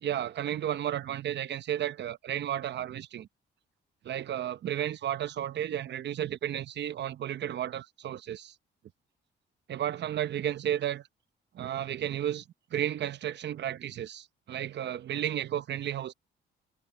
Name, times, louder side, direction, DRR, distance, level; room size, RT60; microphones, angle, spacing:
voice 1, 0.0-3.3 4.0-8.5 9.7-11.0 11.5-12.4 12.7-16.1, right 11 dB, 60° right, 0.9 m, -33 dB
cardioid pair, 90°, 20 cm